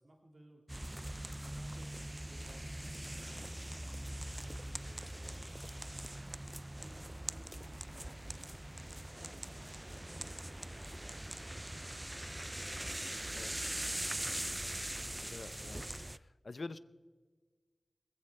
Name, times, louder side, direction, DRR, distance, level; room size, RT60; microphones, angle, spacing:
voice 1, 0.0-2.7 3.1-6.3 6.8-10.0 10.3-15.3, right 1 dB, 50° right, 1 dB, 2.0 m, -62 dB
sound 1, 0.7-16.2, right 1 dB, 15° right, 0.4 m, -42 dB
voice 2, 15.3-16.8, left 3 dB, 55° left, 14 dB, 0.7 m, -47 dB
21.0 x 15.0 x 3.4 m, 1.4 s
wide cardioid pair, 60°, 0 cm